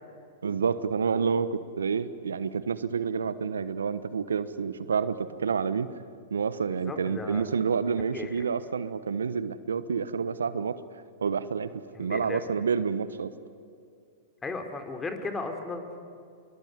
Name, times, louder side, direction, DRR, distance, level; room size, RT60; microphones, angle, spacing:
voice 1, 0.4-5.9 6.3-10.8 11.2-11.7 12.0-13.3, right 6 dB, 80° right, 14 dB, 1.1 m, -28 dB
voice 2, 6.7-7.5 8.1-8.3 11.9-12.4 14.4-16.0, left 3 dB, 15° left, 6 dB, 3.7 m, -35 dB
26.0 x 22.5 x 9.7 m, 2.4 s
hypercardioid pair, 105°, 0 cm